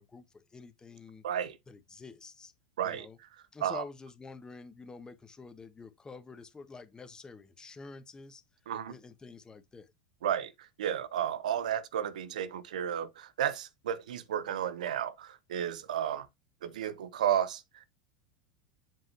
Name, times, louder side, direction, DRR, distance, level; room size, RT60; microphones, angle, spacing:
voice 1, 0.0-1.2 1.7-2.5 2.8-3.2 3.5-8.4 8.9-9.9, left 4 dB, 15° left, 1.2 m, -48 dB
voice 2, 1.2-1.6 2.8-3.1 3.6-3.8 8.7-8.9 10.2-16.3 16.6-17.9, right 10 dB, 75° right, 0.8 m, -33 dB
7.6 x 5.0 x 2.8 m
hypercardioid pair, 85°, 4 cm